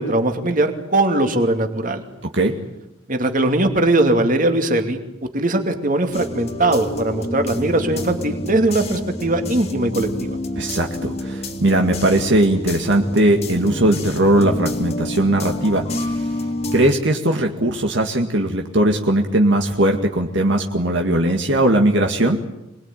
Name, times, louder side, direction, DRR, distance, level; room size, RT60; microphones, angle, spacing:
voice 1, 0.0-2.0 3.1-5.0 5.3-10.4, right 2 dB, 40° right, 5 dB, 2.6 m, -20 dB
sound 1, 6.1-16.9, left 1 dB, 35° left, 2.5 m, -28 dB
voice 2, 10.6-16.4 16.7-22.4, right 1 dB, 65° right, 2 dB, 2.1 m, -19 dB
26.5 x 20.5 x 9.2 m, 0.89 s
head